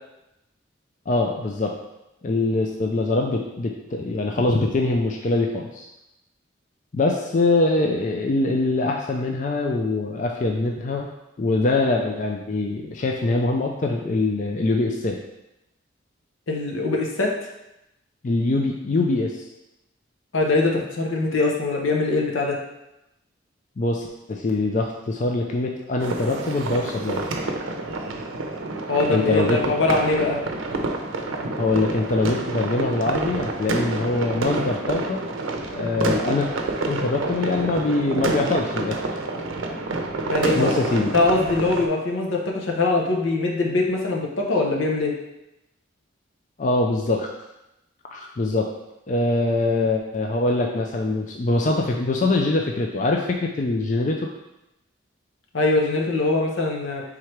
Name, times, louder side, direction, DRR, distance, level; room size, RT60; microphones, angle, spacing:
voice 1, 1.1-1.8 2.2-5.9 6.9-11.1 11.4-15.2 18.2-19.4 23.8-27.2 29.1-29.6 31.6-35.2 35.7-36.5 36.9-39.0 40.5-41.1 46.6-47.3 48.1-48.7 49.1-54.3, left 2 dB, 40° left, 1 dB, 0.4 m, -23 dB
voice 2, 16.5-17.5 20.3-22.6 28.9-30.4 40.3-40.8 41.1-45.1 55.5-57.0, left 3 dB, 85° left, 0 dB, 0.8 m, -22 dB
sound 1, 26.0-41.9, right 2 dB, 85° right, 0.6 m, -28 dB
3.7 x 3.2 x 4.5 m, 0.90 s
head